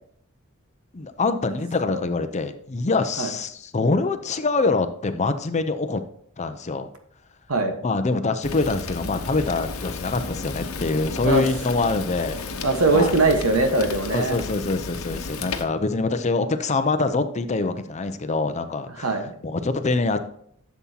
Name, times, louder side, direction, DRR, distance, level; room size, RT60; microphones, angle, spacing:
voice 1, 0.9-6.0 6.4-6.9 7.8-12.4 12.9-13.1 14.1-19.1 19.4-20.2, left 3 dB, 35° left, 9 dB, 0.6 m, -24 dB
Fire, 8.4-15.6, left 3 dB, 85° left, 1.0 m, -33 dB
voice 2, 12.6-14.4 19.0-19.3, right 2 dB, 85° right, 5 dB, 1.4 m, -21 dB
12.0 x 7.2 x 2.9 m, 0.66 s
head